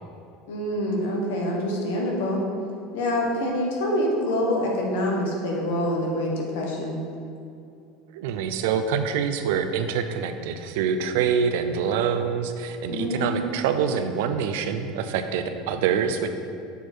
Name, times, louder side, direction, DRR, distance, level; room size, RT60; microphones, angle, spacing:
voice 1, 0.5-2.4 2.9-7.0 12.9-13.3, left 1 dB, 85° left, -1 dB, 1.3 m, -26 dB
voice 2, 8.1-16.3, right 7 dB, 70° right, 8 dB, 0.4 m, -25 dB
6.7 x 4.4 x 4.5 m, 2.5 s
cardioid pair, 175°, 0 cm